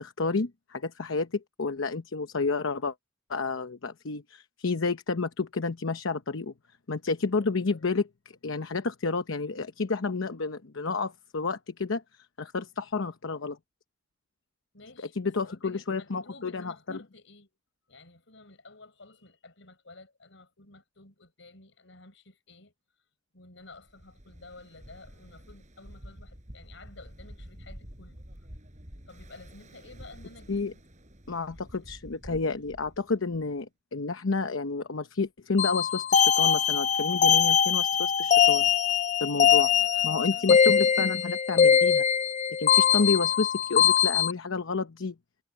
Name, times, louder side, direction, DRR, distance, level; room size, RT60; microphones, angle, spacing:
voice 1, 0.0-2.9 3.3-6.5 6.9-13.6 15.2-17.0 30.5-30.7 31.3-38.7 39.2-39.7 40.0-42.0 42.6-45.1, left 4 dB, 85° left, 0.9 m, -30 dB
voice 2, 7.4-7.8 14.7-17.6 17.9-22.7 23.3-28.2 29.1-30.7 31.5-31.9 39.3-40.8 42.9-43.1, left 3 dB, 70° left, 6.3 m, -52 dB
Ocean, 23.7-33.6, equal, 40° right, 4.7 m, -49 dB
sound 1, 35.6-44.3, left 8 dB, 40° left, 0.6 m, -22 dB
head